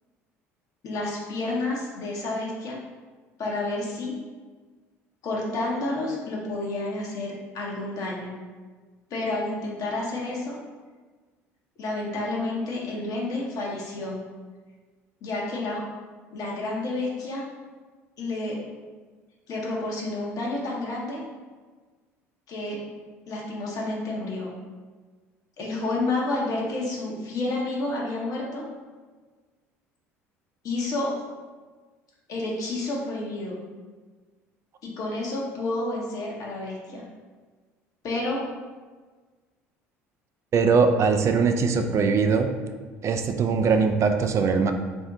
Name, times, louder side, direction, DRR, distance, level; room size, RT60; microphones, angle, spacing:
voice 1, 0.8-2.8 3.4-4.1 5.2-8.3 9.1-10.6 11.8-14.2 15.2-15.8 16.3-17.4 18.2-18.6 19.5-21.2 22.5-22.8 23.3-24.5 25.6-28.6 30.6-31.1 32.3-33.6 34.8-37.0 38.0-38.4, left 2 dB, 55° left, -3 dB, 0.8 m, -30 dB
voice 2, 40.5-42.5 43.0-44.7, right 5 dB, 40° right, 6 dB, 0.3 m, -21 dB
2.6 x 2.1 x 3.7 m, 1.4 s
hypercardioid pair, 60°, 7 cm